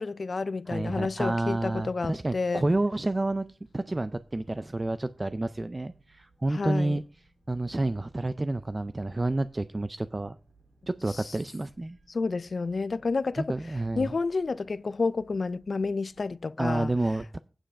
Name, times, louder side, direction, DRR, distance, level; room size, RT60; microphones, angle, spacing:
voice 1, 0.0-2.6 6.5-7.0 11.1-11.4 12.1-13.5 14.0-16.9, left 4 dB, 60° left, 0.3 m, -30 dB
voice 2, 0.7-7.0 7.5-10.4 10.9-12.0 13.4-14.1 16.6-17.4, right 2 dB, 30° right, 0.3 m, -29 dB
sound 1, 2.9-16.5, right 2 dB, 75° right, 3.9 m, -62 dB
8.9 x 7.5 x 5.1 m
wide cardioid pair, 90°, 0 cm